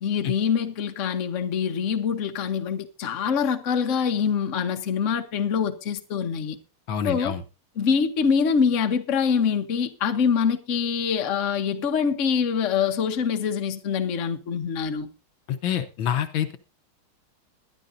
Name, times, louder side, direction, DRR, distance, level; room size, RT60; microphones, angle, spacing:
voice 1, 0.0-6.6 7.0-7.3 7.8-15.1, left 6 dB, 45° left, 1.2 m, -24 dB
voice 2, 6.9-7.4 15.5-16.6, left 9 dB, 70° left, 1.6 m, -27 dB
21.5 x 11.0 x 2.6 m
omnidirectional pair, 2.3 m